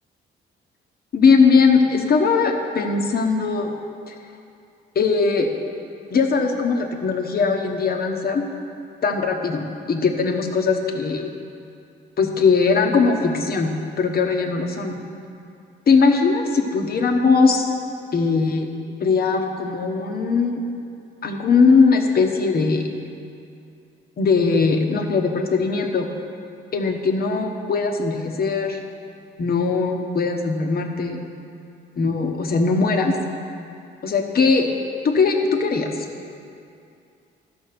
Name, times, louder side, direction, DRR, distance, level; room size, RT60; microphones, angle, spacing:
voice 1, 1.1-3.7 4.1-4.2 4.9-5.5 6.1-8.4 9.0-11.3 12.2-13.7 14.0-14.9 15.9-17.7 18.1-18.7 19.0-20.6 21.2-22.8 24.2-26.1 26.7-28.8 29.4-31.2 32.0-33.2 34.0-34.7 35.0-35.9, left 4 dB, 50° left, 3 dB, 1.2 m, -20 dB
12.0 x 5.4 x 6.8 m, 2.5 s
cardioid pair, 90°, 20 cm